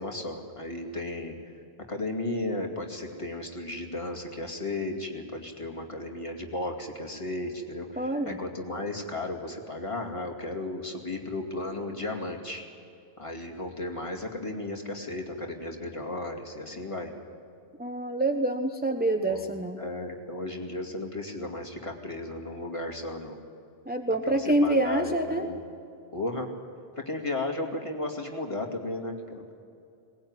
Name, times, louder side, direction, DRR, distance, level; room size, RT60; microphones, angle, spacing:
voice 1, 0.0-1.4 1.8-12.6 13.2-17.1 19.2-23.4 24.2-25.6 26.1-26.5 26.9-29.5, left 2 dB, 30° left, 0 dB, 2.6 m, -34 dB
voice 2, 8.0-8.4 17.8-19.8 23.9-25.5, right 1 dB, 10° right, 4 dB, 0.9 m, -26 dB
21.5 x 19.0 x 9.7 m, 2.6 s
omnidirectional pair, 1.1 m